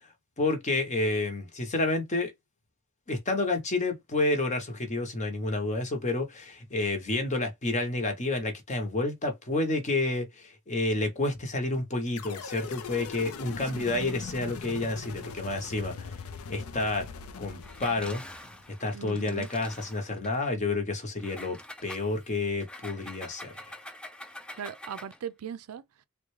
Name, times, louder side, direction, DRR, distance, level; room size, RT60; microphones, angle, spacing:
voice 1, 0.4-2.3 3.1-16.2 16.5-17.1 17.4-18.2 18.8-23.8, left 2 dB, 35° left, 0.8 m, -30 dB
sound 1, 12.2-18.6, left 5 dB, 75° left, 0.5 m, -41 dB
Engine, 17.6-20.4 21.2-25.3, left 1 dB, 5° left, 0.3 m, -46 dB
voice 2, 18.9-19.5 24.6-25.8, right 8 dB, 75° right, 0.4 m, -39 dB
3.5 x 2.2 x 3.1 m
head